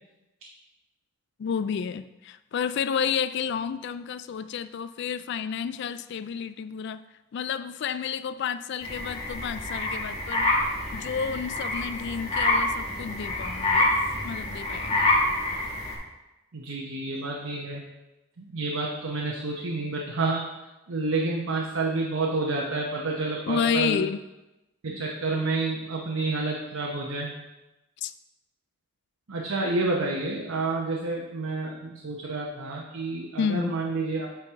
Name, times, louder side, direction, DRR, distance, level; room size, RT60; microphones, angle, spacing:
voice 1, 1.4-7.0 7.3-10.5 10.9-13.9 14.2-15.1 23.5-24.2 28.0-28.1 33.4-33.7, left 7 dB, 55° left, 14 dB, 0.3 m, -30 dB
sound 1, 8.8-15.9, left 2 dB, 30° left, 1.6 m, -27 dB
voice 2, 16.5-17.8 18.4-20.4 20.9-24.0 24.8-27.3 29.3-34.3, right 3 dB, 85° right, -2 dB, 0.8 m, -29 dB
8.4 x 4.8 x 3.6 m, 1.0 s
head